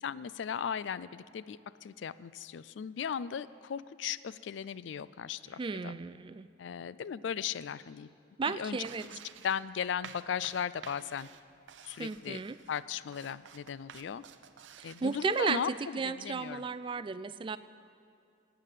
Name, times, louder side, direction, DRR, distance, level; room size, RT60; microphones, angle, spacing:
voice 1, 0.0-5.9 6.6-8.1 8.5-8.8 9.4-11.3 11.8-12.4 12.7-14.2 14.8-15.7 16.0-16.6, left 7 dB, 70° left, 17 dB, 0.4 m, -37 dB
voice 2, 5.6-6.5 8.4-9.1 12.0-12.6 14.8-17.6, right 4 dB, 25° right, 14 dB, 0.3 m, -34 dB
sound 1, 8.8-15.7, right 7 dB, 70° right, 0.6 m, -52 dB
15.5 x 9.3 x 7.4 m, 2.5 s
head